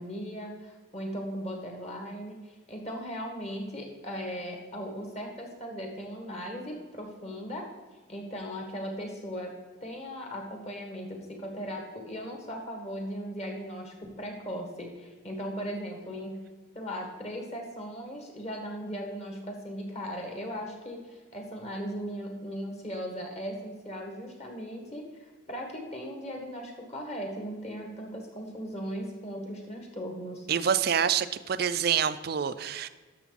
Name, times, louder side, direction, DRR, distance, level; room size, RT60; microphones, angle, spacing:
voice 1, 0.0-7.7 8.1-9.5 9.8-16.4 16.7-30.5, equal, 30° left, 2 dB, 1.7 m, -38 dB
voice 2, 30.5-32.9, right 8 dB, 50° right, 13 dB, 0.4 m, -27 dB
12.0 x 6.7 x 4.1 m, 1.3 s
head